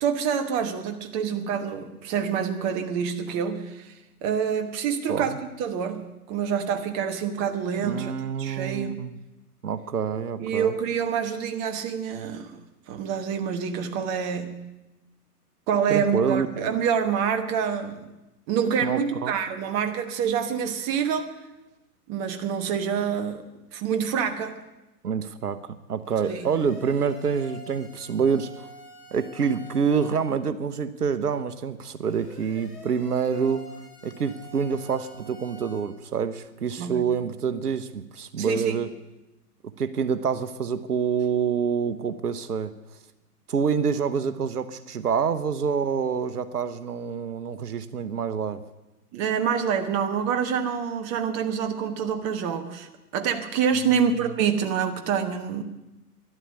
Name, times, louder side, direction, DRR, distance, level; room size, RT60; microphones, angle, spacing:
voice 1, 0.0-8.1 8.4-9.0 10.4-12.6 12.9-14.6 15.7-18.0 18.5-21.4 22.1-23.4 23.7-24.6 26.3-26.5 36.8-37.0 38.4-38.8 49.1-55.6, right 7 dB, 25° right, 7 dB, 1.1 m, -27 dB
voice 2, 7.8-9.2 9.6-10.7 15.9-16.5 18.8-19.3 25.0-28.7 29.1-33.7 34.0-38.9 39.8-42.7 43.5-48.6 53.9-54.0, right 6 dB, 75° right, 12 dB, 1.1 m, -27 dB
sound 1, 26.0-30.3 32.0-35.8, equal, 80° left, 5.7 m, -47 dB
12.5 x 11.0 x 8.1 m, 1.0 s
figure-of-eight pair, 125°, 47 cm